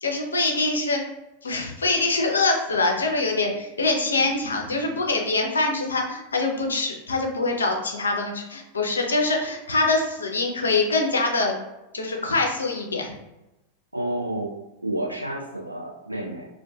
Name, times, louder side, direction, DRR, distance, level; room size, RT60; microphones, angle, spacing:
voice 1, 0.0-1.0 1.4-11.6 11.9-13.1, left 3 dB, 75° left, 2 dB, 0.4 m, -24 dB
voice 2, 13.9-14.5 14.8-16.5, right 1 dB, 85° right, -2 dB, 0.5 m, -30 dB
2.4 x 2.2 x 2.3 m, 0.95 s
figure-of-eight pair, 90°, 0 cm